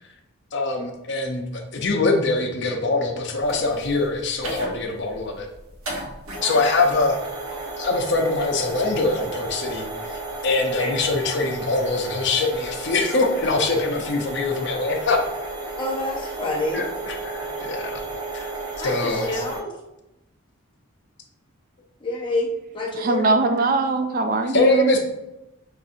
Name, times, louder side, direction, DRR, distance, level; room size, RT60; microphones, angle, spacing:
voice 1, 0.5-1.4 1.7-5.5 6.4-7.2 7.8-9.8 10.1-15.2 16.7-18.0 18.3-18.5 18.8-19.4 24.5-25.0, left 3 dB, 55° left, 2 dB, 0.6 m, -23 dB
sound 1, 3.4-19.6, right 2 dB, 90° right, 0.9 m, -33 dB
voice 2, 6.4-6.8 10.8-10.9 15.8-16.8 18.8-19.7 22.0-23.5, left 2 dB, 20° left, -2 dB, 0.8 m, -28 dB
voice 3, 22.9-25.0, right 3 dB, 40° right, 8 dB, 0.3 m, -21 dB
5.5 x 2.5 x 2.7 m, 0.93 s
head